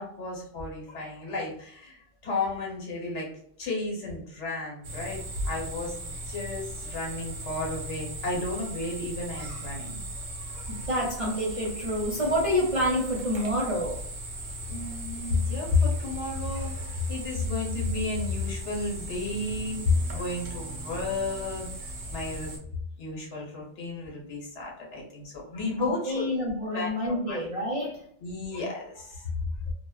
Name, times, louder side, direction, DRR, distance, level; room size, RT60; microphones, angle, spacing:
voice 1, 0.0-3.3 3.6-10.0 10.3-10.9 14.7-21.7 22.1-22.6 23.0-26.3 26.7-27.4 28.2-29.2, left 3 dB, 75° left, -1 dB, 1.2 m, -32 dB
sound 1, 4.8-22.6, right 1 dB, 90° right, 1.0 m, -38 dB
voice 2, 10.7-14.0 25.8-28.0, equal, 55° right, -5 dB, 0.4 m, -28 dB
2.7 x 2.0 x 2.2 m, 0.65 s
omnidirectional pair, 1.2 m